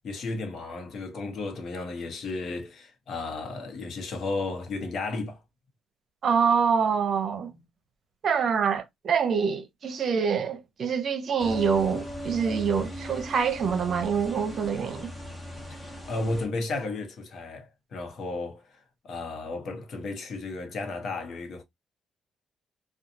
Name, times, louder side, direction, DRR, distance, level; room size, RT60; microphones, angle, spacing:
voice 1, 0.0-5.4 15.7-21.6, left 3 dB, 60° left, 0.9 m, -34 dB
voice 2, 6.2-7.5 8.2-15.1, right 6 dB, 55° right, 0.7 m, -25 dB
sound 1, 11.4-16.5, equal, 10° left, 1.0 m, -38 dB
2.7 x 2.3 x 2.5 m
cardioid pair, 90°, 0 cm